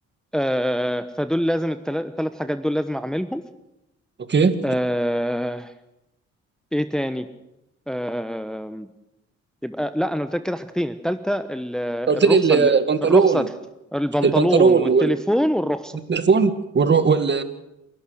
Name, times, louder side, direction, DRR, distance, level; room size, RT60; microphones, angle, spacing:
voice 1, 0.3-3.4 4.6-5.7 6.7-7.3 7.9-8.9 9.6-12.7 13.0-13.5 13.9-16.0, equal, ahead, 10 dB, 1.0 m, -25 dB
voice 2, 12.1-13.5 14.2-15.1 16.1-17.4, right 5 dB, 35° right, 11 dB, 1.9 m, -18 dB
28.0 x 12.0 x 8.0 m, 0.87 s
cardioid pair, 90°, 30 cm